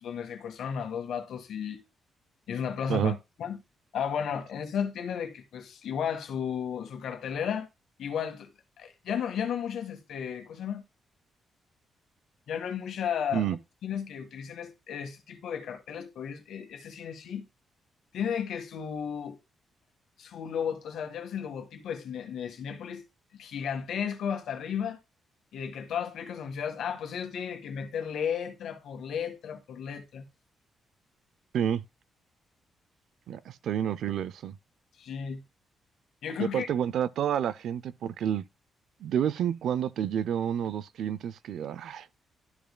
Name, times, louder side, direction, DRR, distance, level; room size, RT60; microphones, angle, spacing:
voice 1, 0.0-1.8 2.5-3.6 3.9-7.7 8.0-8.5 8.8-10.8 12.5-13.6 13.8-17.4 18.1-19.4 20.2-23.0 23.3-25.0 25.5-30.2 35.0-35.4 36.2-36.7, left 8 dB, 65° left, 1.6 m, -34 dB
voice 2, 33.3-34.6 36.4-38.4 39.0-42.1, right 9 dB, 65° right, 0.4 m, -29 dB
12.5 x 5.2 x 2.2 m
cardioid pair, 175°, 0 cm